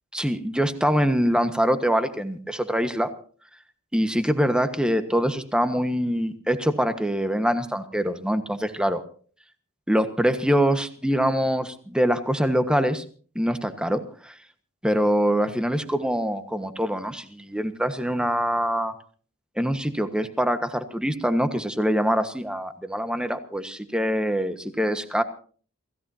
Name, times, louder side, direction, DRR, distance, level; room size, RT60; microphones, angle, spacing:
voice 1, 0.1-3.1 3.9-9.0 9.9-13.0 13.3-14.3 14.8-18.9 19.6-25.2, equal, 5° right, 9 dB, 1.4 m, -24 dB
28.0 x 16.5 x 2.8 m, 0.43 s
head